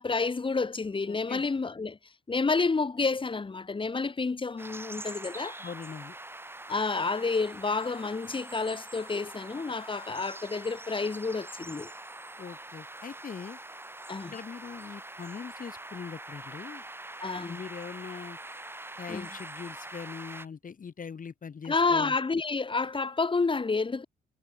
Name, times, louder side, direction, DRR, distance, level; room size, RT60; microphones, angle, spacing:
voice 1, 0.0-2.0 2.3-5.6 6.7-11.9 14.1-14.3 17.2-17.6 19.1-19.3 21.6-24.0, left 4 dB, 25° left, 2.2 m, -29 dB
voice 2, 1.0-1.4 5.6-6.2 12.4-13.6 14.3-16.8 17.5-18.4 19.0-22.2, left 6 dB, 45° left, 7.4 m, -41 dB
sound 1, 4.6-20.5, right 1 dB, 10° right, 7.3 m, -44 dB
cardioid pair, 90°, 20 cm